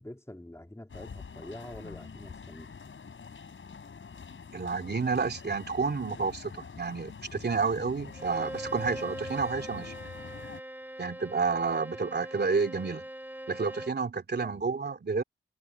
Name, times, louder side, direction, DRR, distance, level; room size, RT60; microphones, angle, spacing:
voice 1, 0.0-2.7 14.4-14.7, left 1 dB, 15° left, 3.6 m, -46 dB
sound 1, 0.9-10.6, left 5 dB, 70° left, 7.0 m, -45 dB
voice 2, 4.5-9.9 11.0-13.1 13.5-15.2, right 4 dB, 50° right, 3.2 m, -30 dB
Bowed string instrument, 8.1-14.0, right 1 dB, 10° right, 3.9 m, -41 dB
cardioid pair, 45°, 21 cm